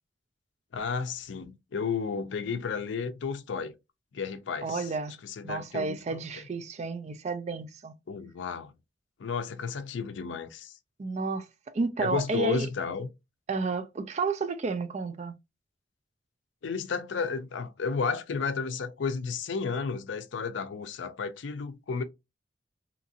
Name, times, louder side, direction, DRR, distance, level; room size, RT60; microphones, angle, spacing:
voice 1, 0.7-3.7 4.1-4.9 5.2-6.5 8.1-8.7 9.2-10.7 12.0-13.1 16.6-22.0, left 5 dB, 80° left, 0.4 m, -32 dB
voice 2, 4.6-5.1 5.4-8.0 11.0-11.5 11.7-12.7 13.5-15.3, right 3 dB, 35° right, 0.3 m, -31 dB
2.8 x 2.4 x 2.7 m
head